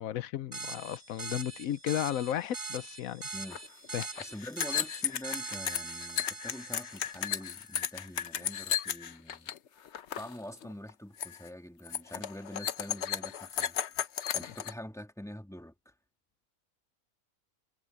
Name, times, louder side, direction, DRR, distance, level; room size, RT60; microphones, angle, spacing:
voice 1, 0.0-3.2 3.9-4.1, left 11 dB, 85° left, 1.1 m, -34 dB
sound 1, 0.5-7.7, right 4 dB, 30° right, 2.7 m, -42 dB
sound 2, 3.5-3.6 3.8-9.6 9.8-10.3 10.6-10.9 11.2-11.5 11.8-14.7, left 9 dB, 60° left, 1.0 m, -34 dB
voice 2, 4.2-9.5 10.2-13.8 14.3-15.9, left 1 dB, ahead, 2.7 m, -45 dB
omnidirectional pair, 1.4 m